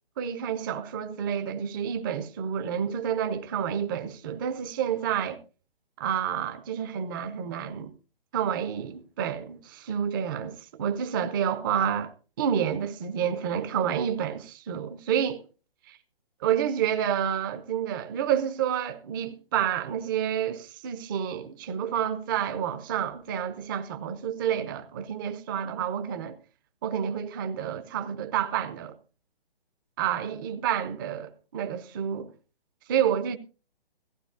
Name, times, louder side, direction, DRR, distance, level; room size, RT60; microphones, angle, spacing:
voice 1, 0.2-5.4 6.0-7.9 8.3-12.1 12.4-15.3 16.4-26.4 26.8-28.9 30.0-32.3 32.9-33.4, right 9 dB, 20° right, 0.8 m, -29 dB
16.5 x 15.0 x 2.6 m
figure-of-eight pair, 145°, 30 cm